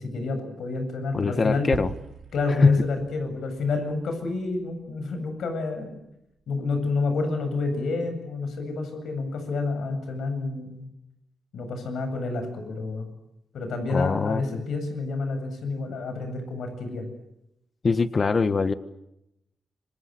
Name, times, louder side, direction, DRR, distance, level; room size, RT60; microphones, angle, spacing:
voice 1, 0.1-1.7 2.3-6.0 6.5-10.9 11.5-13.1 13.5-17.0, left 3 dB, 80° left, 8 dB, 8.0 m, -29 dB
voice 2, 1.1-1.9 2.5-2.8 13.9-14.6 17.8-18.7, left 4 dB, 35° left, 11 dB, 1.5 m, -22 dB
sound 1, 1.7-6.1, right 7 dB, 70° right, 7.4 m, -42 dB
28.0 x 26.0 x 8.0 m, 0.84 s
cardioid pair, 105°, 0 cm